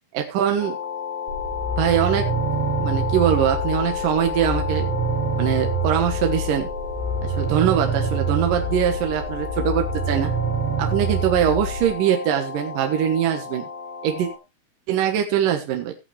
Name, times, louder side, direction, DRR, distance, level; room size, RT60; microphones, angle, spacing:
voice 1, 0.1-0.8 1.8-2.3 2.8-4.9 5.4-6.7 7.2-10.3 10.8-13.7 14.0-14.3 14.9-15.9, right 10 dB, 65° right, 4 dB, 2.7 m, -22 dB
sound 1, 0.6-14.4, left 6 dB, 60° left, 4.0 m, -32 dB
sound 2, 1.3-11.9, right 3 dB, 80° right, 4.5 m, -26 dB
17.0 x 8.4 x 3.3 m, 0.26 s
omnidirectional pair, 4.6 m